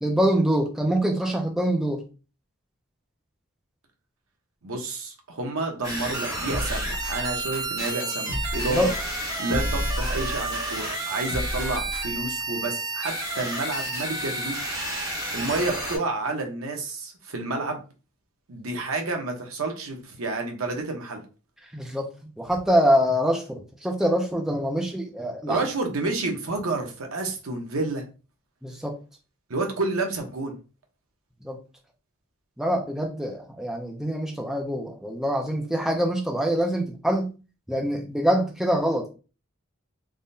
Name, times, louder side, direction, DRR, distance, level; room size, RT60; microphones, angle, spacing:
voice 1, 0.0-2.0 8.7-8.9 21.7-22.1 22.4-25.6 28.6-29.0 31.4-31.6 32.6-37.3 37.7-39.1, equal, ahead, 0.4 m, -24 dB
voice 2, 4.6-8.9 9.4-14.8 15.3-17.8 18.5-21.2 25.5-28.0 29.5-30.6, right 3 dB, 85° right, 0.8 m, -30 dB
sound 1, 5.8-16.0, right 2 dB, 20° right, 0.8 m, -31 dB
sound 2, 6.5-7.9 8.3-10.9 11.3-12.3, left 1 dB, 50° right, 0.9 m, -32 dB
3.5 x 2.1 x 2.6 m
head